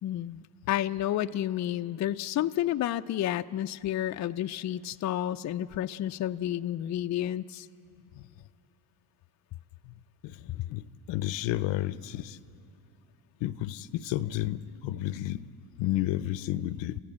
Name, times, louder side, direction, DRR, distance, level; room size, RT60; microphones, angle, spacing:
voice 1, 0.0-7.7, left 12 dB, 40° left, 8 dB, 0.5 m, -31 dB
voice 2, 10.2-12.4 13.4-15.4 15.8-17.0, left 14 dB, 70° left, 16 dB, 0.7 m, -32 dB
28.5 x 15.0 x 8.6 m, 2.7 s
cardioid pair, 95°, 46 cm